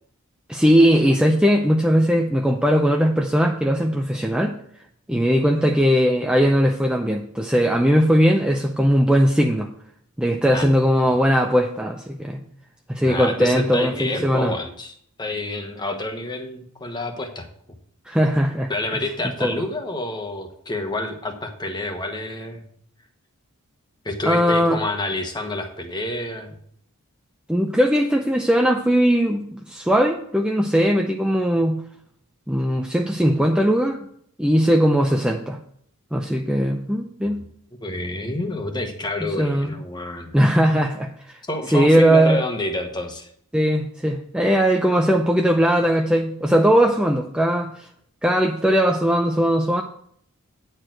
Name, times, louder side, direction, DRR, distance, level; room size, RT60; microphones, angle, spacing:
voice 1, 0.5-4.6 5.1-9.7 10.2-12.4 12.9-14.5 18.1-18.7 19.4-19.5 24.3-24.8 27.5-31.8 32.5-34.0 34.4-35.6 36.1-37.4 39.4-39.7 40.3-41.4 41.7-42.4 43.5-47.9 48.2-49.8, equal, 5° right, 2 dB, 0.5 m, -19 dB
voice 2, 13.0-17.5 18.7-22.6 24.0-26.5 37.8-40.3 41.5-43.3, left 2 dB, 20° left, 5 dB, 1.1 m, -28 dB
9.7 x 4.5 x 7.6 m, 0.65 s
head